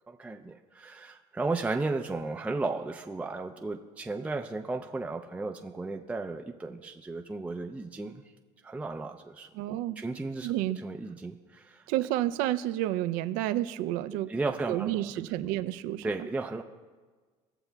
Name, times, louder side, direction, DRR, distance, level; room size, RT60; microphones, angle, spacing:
voice 1, 0.1-8.2 8.6-9.5 10.0-11.8 14.3-15.1 16.0-16.6, right 3 dB, 10° right, 3 dB, 0.4 m, -34 dB
voice 2, 9.5-10.0 10.4-10.8 11.9-14.3 14.7-16.1, right 14 dB, 80° right, 12 dB, 0.4 m, -30 dB
18.0 x 6.8 x 2.3 m, 1.4 s
supercardioid pair, 100°, 14 cm